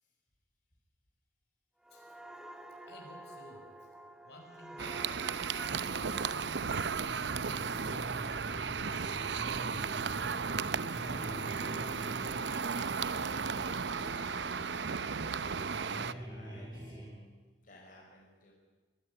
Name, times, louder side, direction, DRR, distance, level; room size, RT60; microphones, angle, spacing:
sound 1, 1.8-9.3 9.7-10.0, right 1 dB, 5° right, 1.5 m, -51 dB
voice 1, 1.9-3.9 4.2-5.2 5.8-10.1 10.8-12.0 12.2-14.1, left 1 dB, 70° left, 1 dB, 5.8 m, -55 dB
sound 2, 4.8-16.1, right 5 dB, 75° right, 0.7 m, -35 dB
sound 3, 7.0-17.1, right 1 dB, 20° right, 6.4 m, -45 dB
voice 2, 15.8-17.3 17.6-18.5, left 2 dB, 50° left, -1 dB, 5.1 m, -56 dB
23.5 x 17.0 x 9.8 m, 1.2 s
head